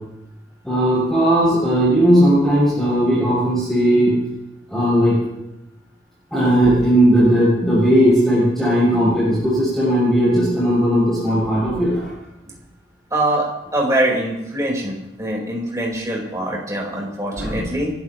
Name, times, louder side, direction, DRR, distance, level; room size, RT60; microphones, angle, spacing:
voice 1, 0.6-4.2 4.7-5.2 6.3-12.0 17.4-17.7, equal, ahead, -9 dB, 6.6 m, -17 dB
voice 2, 13.1-17.9, right 1 dB, 15° right, -2 dB, 4.5 m, -23 dB
29.0 x 13.5 x 3.1 m, 0.92 s
head